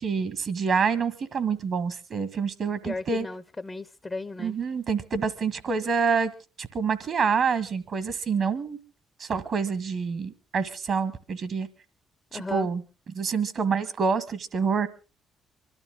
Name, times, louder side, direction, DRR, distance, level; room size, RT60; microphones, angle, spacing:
voice 1, 0.0-3.3 4.4-6.3 6.6-8.8 9.2-11.7 12.3-12.8 13.1-14.9, right 5 dB, 60° right, 1.7 m, -27 dB
voice 2, 2.8-4.6 12.3-12.7, left 3 dB, 30° left, 0.7 m, -35 dB
25.0 x 12.5 x 3.8 m
hypercardioid pair, 45°, 0 cm